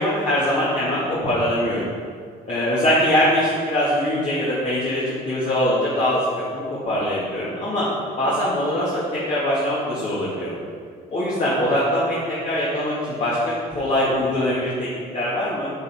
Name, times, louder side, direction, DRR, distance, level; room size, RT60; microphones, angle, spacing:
voice 1, 0.0-1.8 2.5-7.9 8.2-10.5 11.1-14.9 15.1-15.7, left 1 dB, 45° left, -8 dB, 2.4 m, -22 dB
8.5 x 8.3 x 4.5 m, 2.1 s
cardioid pair, 110°, 17 cm